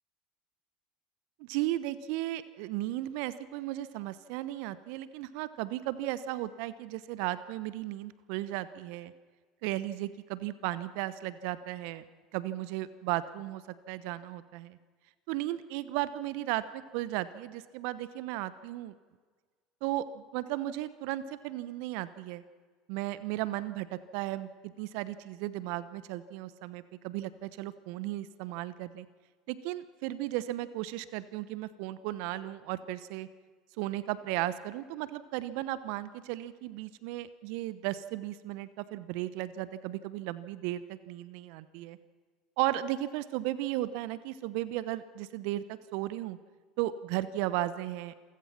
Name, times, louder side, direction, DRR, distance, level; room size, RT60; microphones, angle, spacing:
voice 1, 1.4-9.1 9.6-12.0 12.3-14.8 15.3-18.9 19.8-22.4 22.9-29.1 29.5-33.3 33.8-42.0 42.6-46.4 46.8-48.1, right 15 dB, 60° right, 15 dB, 1.0 m, -35 dB
27.5 x 16.0 x 6.0 m, 1.5 s
figure-of-eight pair, 70°, 3 cm